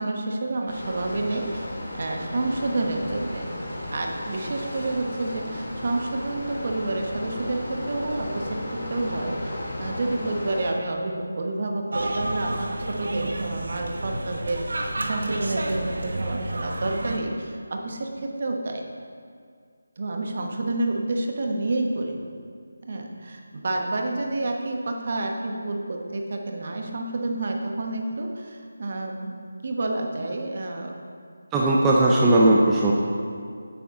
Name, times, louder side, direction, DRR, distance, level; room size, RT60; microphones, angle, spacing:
voice 1, 0.0-1.7 1.9-3.5 3.9-18.8 20.0-22.2 22.8-29.4 29.6-31.0, right 2 dB, 45° right, 2 dB, 1.2 m, -29 dB
sound 1, 0.7-10.7, left 1 dB, 50° left, 1.8 m, -34 dB
sound 2, 11.9-17.2, right 1 dB, 65° right, 1.1 m, -30 dB
voice 2, 31.5-32.9, right 1 dB, 10° right, -4 dB, 0.6 m, -18 dB
9.9 x 8.3 x 3.7 m, 2.2 s
figure-of-eight pair, 165°, 0 cm